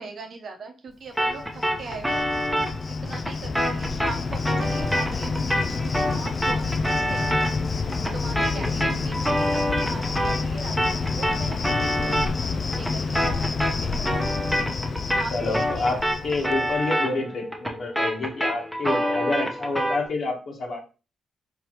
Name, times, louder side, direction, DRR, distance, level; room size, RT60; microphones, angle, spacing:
voice 1, 0.0-2.4 2.9-7.5 7.8-14.4 15.1-16.0 18.8-19.2, right 4 dB, 65° right, 4 dB, 0.9 m, -40 dB
Cricket, 1.2-16.9, left 4 dB, 50° left, 0.4 m, -29 dB
sound 1, 1.2-10.5 10.8-20.1, equal, ahead, 0.9 m, -27 dB
voice 2, 8.4-8.7 15.3-20.8, left 3 dB, 65° left, 1 dB, 1.4 m, -28 dB
4.5 x 3.3 x 3.0 m, 0.33 s
cardioid pair, 65°, 0 cm